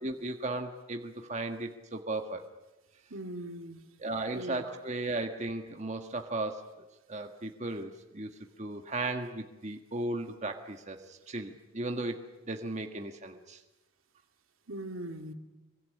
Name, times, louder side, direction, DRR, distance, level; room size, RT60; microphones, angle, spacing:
voice 1, 0.0-2.4 4.0-6.6 7.1-8.3 8.6-12.2 12.5-13.6, right 2 dB, 35° right, 4 dB, 1.7 m, -36 dB
voice 2, 3.1-3.8 4.3-4.7 14.7-15.3, right 1 dB, 80° right, 5 dB, 2.5 m, -40 dB
25.5 x 23.0 x 9.9 m, 1.1 s
head